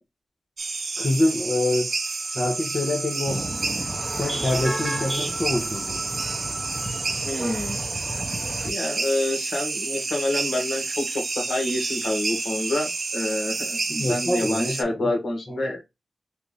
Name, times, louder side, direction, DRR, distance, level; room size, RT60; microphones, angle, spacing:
sound 1, 0.6-14.8, right 3 dB, 60° right, 0.8 m, -30 dB
voice 1, 1.0-3.5 4.1-6.0 13.9-15.1, left 1 dB, 45° left, 1.0 m, -26 dB
sound 2, 3.3-8.7, right 1 dB, 15° right, 0.7 m, -33 dB
voice 2, 7.2-7.8 8.6-15.8, left 1 dB, 70° left, 1.7 m, -27 dB
3.5 x 2.6 x 3.2 m
cardioid pair, 55°, 0 cm